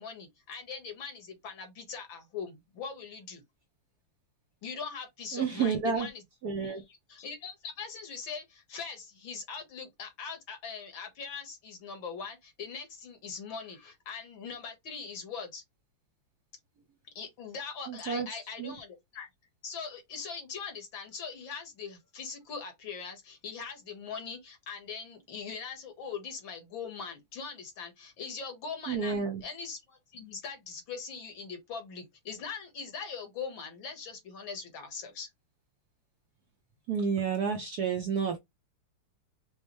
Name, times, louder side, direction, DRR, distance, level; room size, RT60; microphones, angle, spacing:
voice 1, 0.0-3.4 4.6-6.2 6.6-15.6 17.2-19.3 19.6-35.3, left 5 dB, 65° left, 2.0 m, -41 dB
voice 2, 5.3-6.1 6.4-6.8 17.9-18.3 18.6-18.7 28.9-29.4 36.9-38.4, right 6 dB, 60° right, 1.1 m, -30 dB
5.5 x 2.1 x 3.1 m
omnidirectional pair, 2.4 m